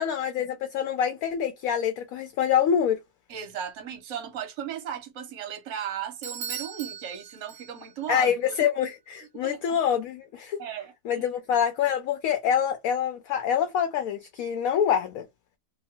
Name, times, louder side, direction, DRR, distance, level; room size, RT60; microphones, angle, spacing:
voice 1, 0.0-3.0 8.1-10.6 11.1-15.3, left 8 dB, 70° left, 0.9 m, -26 dB
voice 2, 3.3-8.7 9.4-9.8 10.6-11.3, right 9 dB, 55° right, 1.0 m, -36 dB
Bell / Doorbell, 6.2-8.1, right 8 dB, 75° right, 0.6 m, -38 dB
2.8 x 2.3 x 2.8 m
omnidirectional pair, 1.8 m